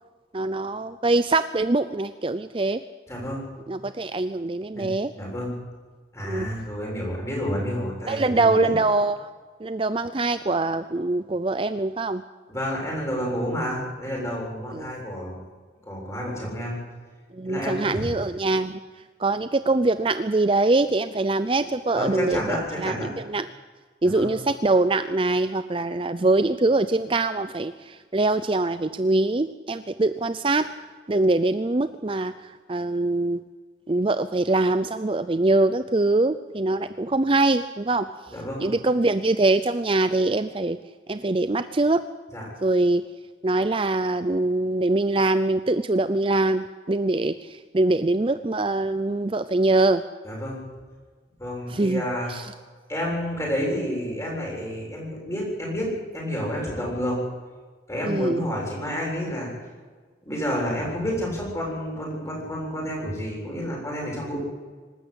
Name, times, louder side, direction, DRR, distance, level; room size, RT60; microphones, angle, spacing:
voice 1, 0.3-2.8 3.7-5.1 6.2-6.5 8.1-9.3 9.6-12.2 14.7-14.9 17.3-18.8 19.2-23.5 24.0-30.7 31.1-33.4 33.9-38.1 38.6-40.8 41.1-42.0 42.6-43.0 43.4-50.0 51.7-52.0 52.3-52.5 58.0-58.5, right 2 dB, 30° right, 11 dB, 0.5 m, -23 dB
voice 2, 3.1-3.4 4.7-5.5 6.1-8.7 12.5-15.4 15.9-16.8 17.4-18.0 21.9-23.1 24.0-24.3 38.3-38.7 42.3-42.4 50.2-50.6 51.4-52.3 52.9-57.2 57.9-59.5 60.3-64.4, equal, 15° left, -2 dB, 7.4 m, -30 dB
25.5 x 13.0 x 8.2 m, 1.5 s
head